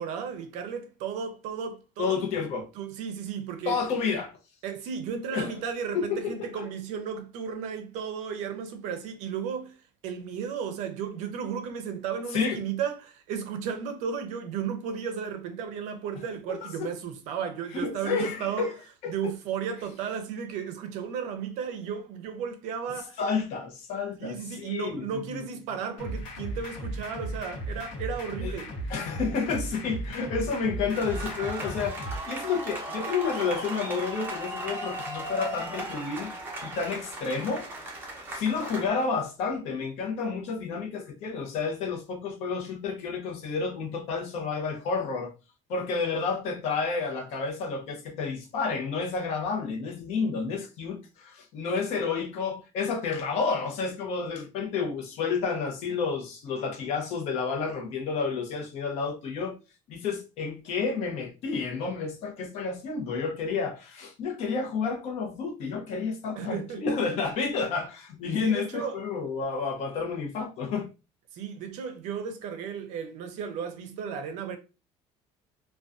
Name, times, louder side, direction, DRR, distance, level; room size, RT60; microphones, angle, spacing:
voice 1, 0.0-2.2 2.7-3.8 4.6-18.7 19.1-23.2 24.2-28.7 66.4-66.8 68.4-69.0 71.3-74.6, right 7 dB, 60° right, 0.5 m, -34 dB
voice 2, 2.0-2.7 3.7-4.3 5.3-5.5 5.9-6.7 12.3-12.6 16.5-16.9 17.7-18.7 19.0-19.3 23.2-25.4 28.4-28.5 28.9-32.0 32.3-36.3 36.6-37.7 38.3-45.3 45.7-59.6 59.9-70.9, left 5 dB, 55° left, 0.6 m, -30 dB
sound 1, 26.0-32.2, right 1 dB, 75° left, 0.9 m, -36 dB
sound 2, 30.9-38.9, right 1 dB, 15° right, 0.7 m, -37 dB
2.5 x 2.2 x 2.3 m
cardioid pair, 180°, 13 cm